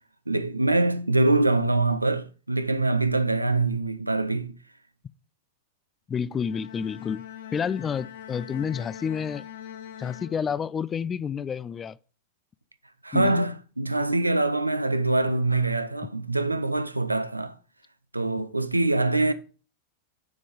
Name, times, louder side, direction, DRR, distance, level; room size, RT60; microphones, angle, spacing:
voice 1, 0.3-4.5 13.0-17.5 18.1-19.3, right 2 dB, 85° right, 0.6 m, -24 dB
voice 2, 6.1-7.2 7.5-9.4 10.0-12.0 13.1-13.4, left 7 dB, 20° left, 0.3 m, -29 dB
Bowed string instrument, 6.3-11.0, left 10 dB, 55° left, 0.8 m, -43 dB
9.5 x 5.3 x 5.2 m
figure-of-eight pair, 90°, 0 cm